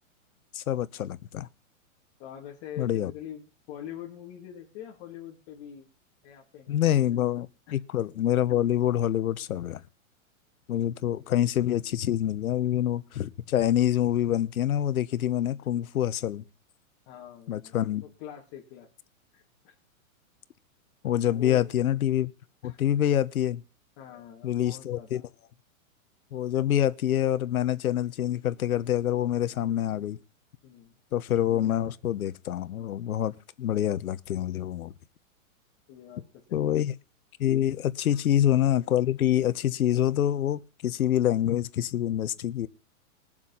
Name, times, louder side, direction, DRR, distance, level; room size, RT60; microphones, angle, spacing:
voice 1, 0.5-1.5 2.8-3.1 6.7-9.8 10.7-16.4 17.5-18.0 21.0-22.3 22.6-23.6 24.4-25.2 26.3-30.2 31.1-34.9 36.5-36.9 37.4-42.7, left 11 dB, 85° left, 1.1 m, -26 dB
voice 2, 2.2-5.9 6.2-7.0 7.7-7.8 17.1-17.8 18.0-18.9 19.3-19.7 21.3-21.7 22.6-22.8 24.0-25.2 30.6-31.0 35.9-36.2 36.5-36.8 38.1-38.2, left 10 dB, 30° left, 2.4 m, -44 dB
21.0 x 7.4 x 5.6 m
hypercardioid pair, 160°, 42 cm